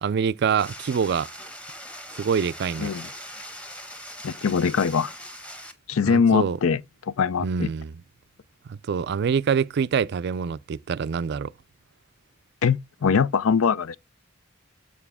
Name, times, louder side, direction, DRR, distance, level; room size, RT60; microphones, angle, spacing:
voice 1, 0.0-1.3 2.1-2.9 6.1-6.6 7.4-7.9 8.7-11.5, right 6 dB, 55° right, 0.3 m, -25 dB
sound 1, 0.6-5.7, equal, 5° left, 1.0 m, -41 dB
voice 2, 4.2-5.1 5.9-6.8 7.1-7.7 12.6-14.0, left 6 dB, 80° left, 0.5 m, -22 dB
7.0 x 6.6 x 3.5 m
head